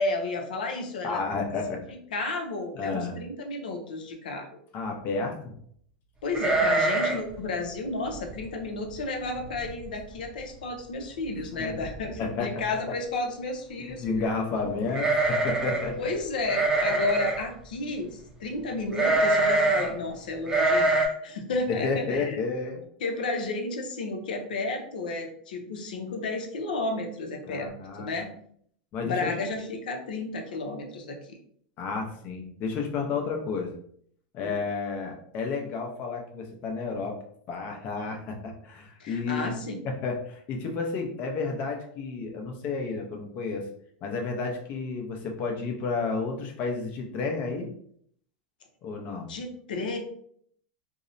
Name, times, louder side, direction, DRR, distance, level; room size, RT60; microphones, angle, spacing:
voice 1, 0.0-1.2 2.1-4.5 6.2-14.0 14.5-14.7 16.0-22.4 23.0-27.7 28.0-28.3 29.0-31.4 34.4-34.6 39.0-39.8 49.3-50.0, left 2 dB, 85° left, 4 dB, 0.6 m, -32 dB
voice 2, 1.0-1.8 2.7-3.1 4.7-5.4 11.5-11.8 12.2-12.5 13.8-16.1 21.7-22.8 27.5-28.1 28.9-29.3 31.8-33.7 34.3-37.2 37.5-39.5 39.8-43.6 44.0-47.7 48.8-49.3, left 4 dB, 45° left, 2 dB, 0.7 m, -31 dB
sound 1, 6.3-7.3 7.6-7.7 8.1-8.4 9.0-9.1 9.4-9.9 10.2-10.3 11.4-11.5 11.8-12.2 14.9-15.9 16.5-17.4 18.9-19.9 20.5-21.1, right 2 dB, 15° right, 0.5 m, -24 dB
2.7 x 2.0 x 2.5 m, 0.63 s
hypercardioid pair, 115°, 5 cm